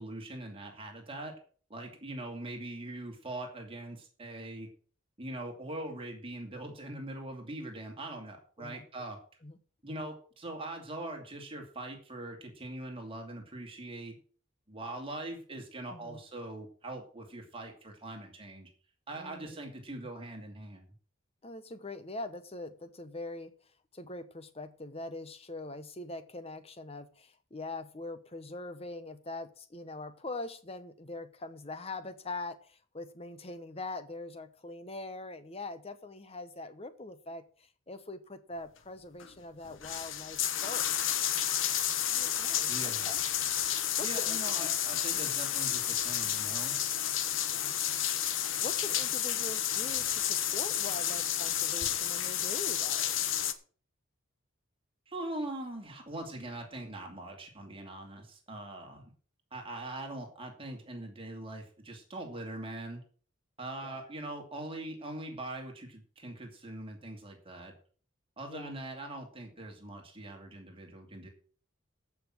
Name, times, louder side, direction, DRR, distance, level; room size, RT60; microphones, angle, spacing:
voice 1, 0.0-1.3 1.7-4.7 5.2-9.2 9.8-14.2 14.7-18.7 19.1-20.9 42.6-43.1 44.0-46.8 55.1-59.0 59.5-63.0 63.6-67.7 68.4-71.3, right 1 dB, 25° right, 2 dB, 2.6 m, -42 dB
voice 2, 19.2-19.6 21.4-23.5 23.9-41.4 42.1-43.2 43.7-44.7 45.1-45.3 47.5-47.9 48.2-53.4 63.8-64.0 68.4-68.7, left 2 dB, 30° left, 11 dB, 1.0 m, -43 dB
sound 1, 39.2-39.3 39.7-53.5, left 10 dB, 70° left, 1.1 m, -31 dB
14.0 x 6.0 x 6.2 m, 0.43 s
head